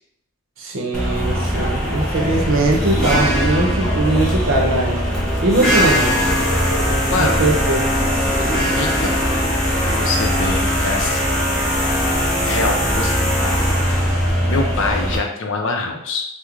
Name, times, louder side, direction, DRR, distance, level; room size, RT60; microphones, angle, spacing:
voice 1, 0.6-5.0 5.4-6.1 7.2-7.9, right 2 dB, 70° right, 0 dB, 0.7 m, -20 dB
sound 1, 0.9-15.2, equal, 5° left, 0.7 m, -20 dB
voice 2, 7.1-7.4 8.5-9.2 9.8-11.4 11.9-12.1 12.5-13.3 13.9-16.3, left 3 dB, 65° left, 2 dB, 0.5 m, -25 dB
4.5 x 2.1 x 2.4 m, 0.76 s
head